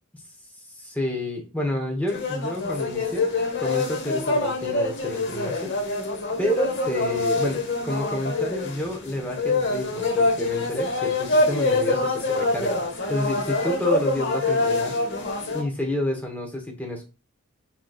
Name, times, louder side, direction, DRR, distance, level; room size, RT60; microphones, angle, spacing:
voice 1, 0.8-3.3 3.6-5.7 6.4-15.0 15.5-17.0, left 1 dB, 5° left, 1 dB, 1.0 m, -29 dB
sound 1, 2.1-15.6, left 3 dB, 55° left, 1.0 m, -25 dB
6.3 x 3.0 x 2.4 m, 0.31 s
head